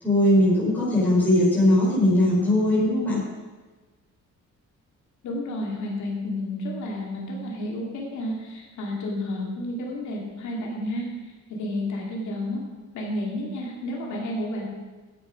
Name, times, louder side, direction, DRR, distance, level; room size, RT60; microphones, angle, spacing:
voice 1, 0.0-3.3, left 1 dB, 5° left, -8 dB, 4.3 m, -20 dB
voice 2, 5.2-12.6 12.9-14.6, left 1 dB, 75° left, -2 dB, 2.5 m, -31 dB
13.0 x 8.4 x 5.1 m, 1.3 s
cardioid pair, 180°, 29 cm